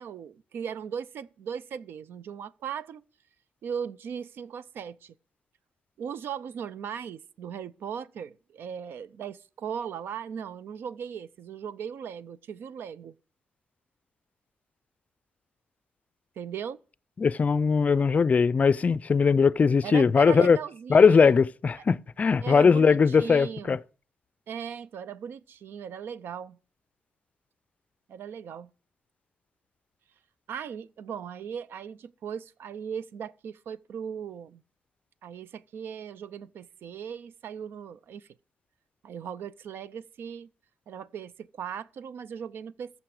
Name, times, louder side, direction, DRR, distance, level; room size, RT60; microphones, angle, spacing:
voice 1, 0.0-3.0 3.6-5.1 6.0-13.1 16.4-16.8 19.8-21.4 22.4-23.8 24.5-26.6 28.1-28.7 30.5-34.6 35.2-38.3 39.0-40.5 40.9-42.9, right 7 dB, 75° right, 0.5 m, -38 dB
voice 2, 17.2-20.6 20.9-23.8, left 5 dB, 40° left, 0.4 m, -20 dB
14.0 x 7.1 x 4.9 m
cardioid pair, 75°, 4 cm